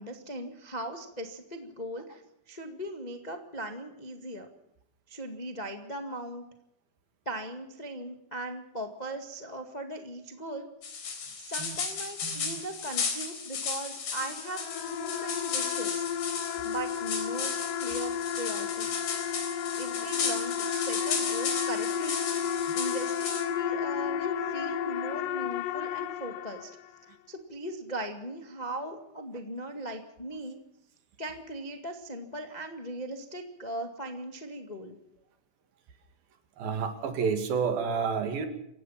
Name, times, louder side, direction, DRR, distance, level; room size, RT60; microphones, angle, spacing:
voice 1, 0.0-2.2 2.5-4.5 5.1-6.4 7.2-10.7 11.4-16.0 16.6-19.2 19.8-22.2 22.7-26.7 27.3-30.6 31.2-35.0, right 1 dB, 20° left, 5 dB, 1.0 m, -39 dB
sound 1, 10.8-23.4, left 5 dB, 85° left, 5.7 m, -35 dB
sound 2, 14.2-27.0, left 8 dB, 70° left, 2.7 m, -33 dB
voice 2, 36.6-38.5, right 6 dB, 75° right, 7 dB, 4.0 m, -30 dB
28.5 x 16.5 x 5.8 m, 0.79 s
omnidirectional pair, 4.3 m